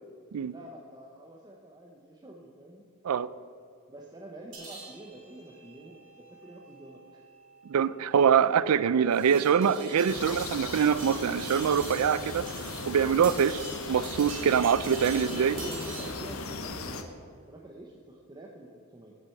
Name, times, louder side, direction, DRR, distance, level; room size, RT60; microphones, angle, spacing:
voice 1, 0.5-2.9 3.9-7.2 15.1-19.1, right 1 dB, 20° right, -1 dB, 0.8 m, -47 dB
sound 1, 4.5-16.4, right 3 dB, 60° right, 2.3 m, -45 dB
voice 2, 7.7-12.5 12.9-15.5, right 7 dB, 90° right, 17 dB, 0.4 m, -24 dB
sound 2, 10.1-17.0, left 3 dB, 75° left, 0.9 m, -38 dB
7.8 x 7.6 x 7.7 m, 2.3 s
head